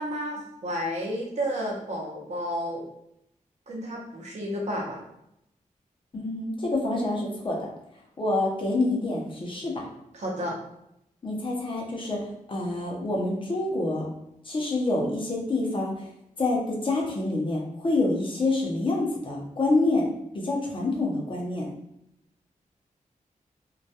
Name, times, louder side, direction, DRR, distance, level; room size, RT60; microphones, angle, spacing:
voice 1, 0.0-2.8 3.7-5.0 10.1-10.6, equal, 55° right, -2 dB, 0.6 m, -31 dB
voice 2, 6.1-7.7 8.2-9.8 11.2-12.2 12.5-14.1 14.4-16.1 16.4-21.7, left 2 dB, 35° left, -2 dB, 0.5 m, -27 dB
2.2 x 2.1 x 2.7 m, 0.79 s
wide cardioid pair, 140°, 14 cm